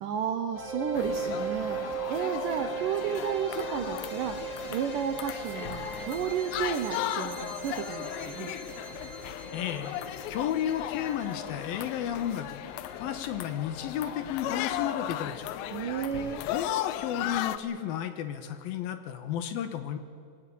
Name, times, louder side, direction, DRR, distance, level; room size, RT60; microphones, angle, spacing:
voice 1, 0.0-8.5 15.7-16.4, right 8 dB, 80° right, 7 dB, 1.9 m, -32 dB
sound 1, 0.5-15.5, right 5 dB, 25° right, 3.9 m, -39 dB
sound 2, 1.0-17.6, left 12 dB, 85° left, 3.1 m, -36 dB
voice 2, 9.5-9.9 10.3-12.6 13.0-15.6 16.5-20.0, left 10 dB, 70° left, 9 dB, 2.6 m, -33 dB
22.0 x 18.0 x 8.5 m, 2.2 s
omnidirectional pair, 5.1 m